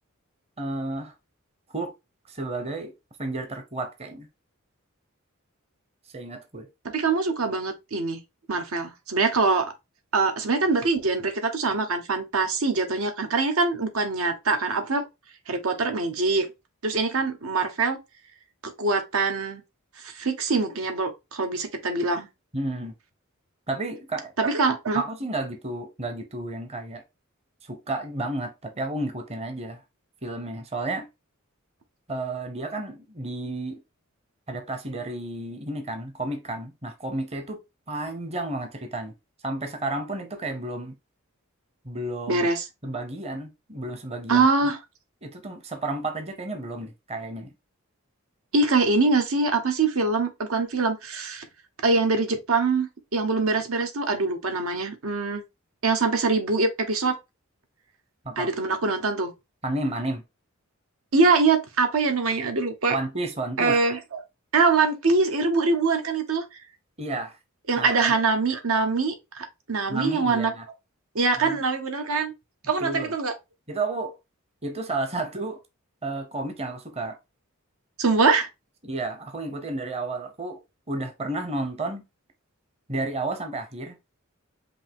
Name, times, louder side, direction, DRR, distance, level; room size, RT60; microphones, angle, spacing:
voice 1, 0.6-1.1 1.7-1.9 2.2-2.9 3.2-4.3 6.1-6.7 22.5-22.9 23.7-24.3 24.9-27.0 27.6-29.8 30.2-31.1 32.1-33.8 34.5-37.6 37.9-39.1 39.4-40.9 41.8-42.5 42.8-44.5 45.2-47.5 58.2-58.5 59.6-60.2 62.9-63.8 67.0-67.4 67.8-68.1 69.9-70.6 71.4-71.6 72.8-73.1 73.7-74.2 74.6-75.6 76.0-77.2 78.8-80.6 80.9-82.0 82.9-84.0, right 2 dB, 30° right, 0.8 m, -32 dB
voice 2, 6.8-8.2 8.5-9.7 10.1-15.1 15.5-16.5 16.8-18.0 18.6-19.6 20.0-22.3 24.4-25.0 42.3-42.6 44.3-44.8 48.5-51.5 51.8-55.4 55.8-57.2 58.4-59.3 61.1-62.9 63.6-64.0 64.5-66.4 67.7-70.5 71.1-72.3 72.7-73.3 78.0-78.5, right 3 dB, 80° right, 1.0 m, -23 dB
5.2 x 2.9 x 3.5 m
head